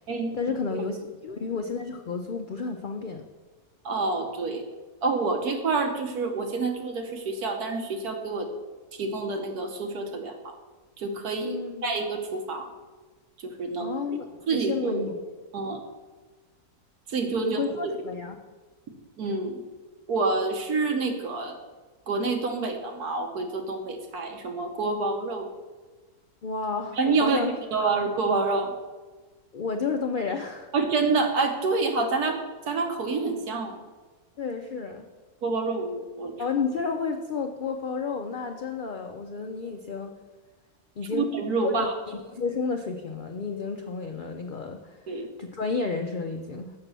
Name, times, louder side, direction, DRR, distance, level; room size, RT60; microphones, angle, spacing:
voice 1, 0.3-3.2 11.4-11.9 13.8-15.2 17.4-18.3 26.4-27.5 29.5-30.7 34.4-35.0 36.4-40.1 41.0-41.3 41.6-46.7, left 4 dB, 70° left, 4 dB, 0.4 m, -31 dB
voice 2, 3.8-4.6 5.0-8.5 9.0-10.5 11.0-11.5 11.8-12.7 13.4-13.9 14.5-15.0 15.5-15.8 17.1-17.6 19.2-19.6 20.1-21.5 22.1-25.5 27.0-27.4 27.7-28.7 30.7-32.4 32.7-33.8 35.4-36.3 41.1-41.9 45.1-45.3, right 3 dB, 90° right, 3 dB, 1.6 m, -27 dB
6.7 x 6.0 x 6.7 m, 1.3 s
omnidirectional pair, 1.6 m